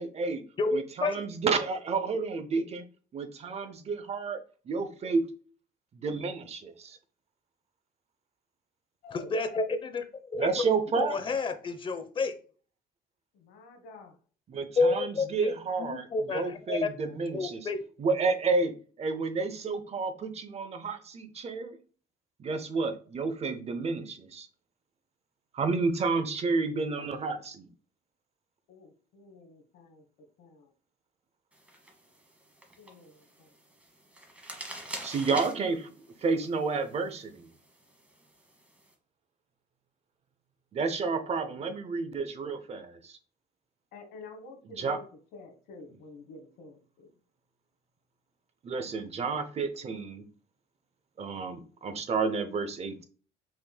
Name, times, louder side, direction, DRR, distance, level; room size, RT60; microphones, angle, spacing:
voice 1, 0.0-0.5 0.7-2.8 3.1-4.4 4.7-5.3 5.9-7.0 10.4-11.2 14.5-17.6 18.0-21.8 22.4-24.5 25.5-27.7 35.0-35.9 36.2-37.5 40.7-43.2 44.6-45.0 48.6-50.2 51.2-53.0, right 4 dB, 40° right, 9 dB, 0.7 m, -30 dB
voice 2, 0.6-1.2 9.1-10.0 10.3-12.3 14.8-15.5 15.8-16.9 17.3-17.8, left 3 dB, 30° left, 9 dB, 0.6 m, -30 dB
voice 3, 9.0-9.3 13.3-14.2 28.7-30.0 30.4-30.7 32.8-33.5 43.9-45.0 45.3-47.1, left 3 dB, 90° left, 4 dB, 1.2 m, -49 dB
sound 1, 31.5-38.9, right 1 dB, 5° right, 1.1 m, -46 dB
5.7 x 3.2 x 2.2 m, 0.40 s
cardioid pair, 110°, 17 cm